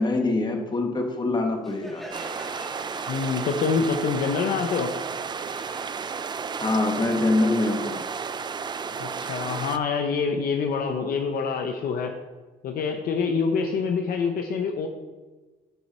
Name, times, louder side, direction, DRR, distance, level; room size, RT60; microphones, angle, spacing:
voice 1, 0.0-2.0 6.6-8.0, left 2 dB, 25° left, 4 dB, 1.4 m, -24 dB
Crowd, 1.6-7.1, equal, ahead, 2.4 m, -45 dB
sound 1, 2.1-9.8, right 6 dB, 25° right, 0.4 m, -33 dB
voice 2, 3.1-4.9 9.0-12.1 12.6-14.9, left 5 dB, 60° left, 4 dB, 0.8 m, -26 dB
13.5 x 4.6 x 4.3 m, 1.2 s
cardioid pair, 110°, 17 cm